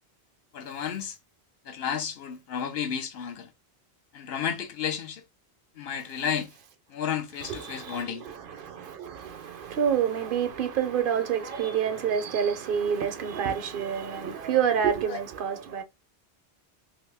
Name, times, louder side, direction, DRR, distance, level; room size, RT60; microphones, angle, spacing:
voice 1, 0.5-1.1 1.7-3.5 4.1-5.2 5.8-6.5 6.9-8.2 15.1-15.2, left 8 dB, 75° left, 0.9 m, -32 dB
voice 2, 7.4-15.8, right 8 dB, 60° right, 0.7 m, -28 dB
2.8 x 2.5 x 3.3 m
omnidirectional pair, 1.1 m